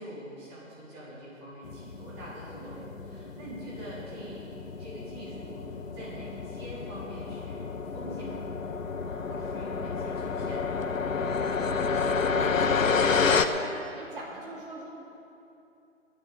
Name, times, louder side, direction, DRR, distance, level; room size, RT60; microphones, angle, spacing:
voice 1, 0.0-10.8, right 1 dB, 20° right, -8 dB, 3.6 m, -45 dB
sound 1, 1.6-13.5, left 5 dB, 75° left, 1.0 m, -30 dB
voice 2, 11.6-12.0 12.3-13.7 13.9-14.9, right 2 dB, 40° right, -4 dB, 3.3 m, -44 dB
26.0 x 11.0 x 3.5 m, 2.7 s
figure-of-eight pair, 160°, 40 cm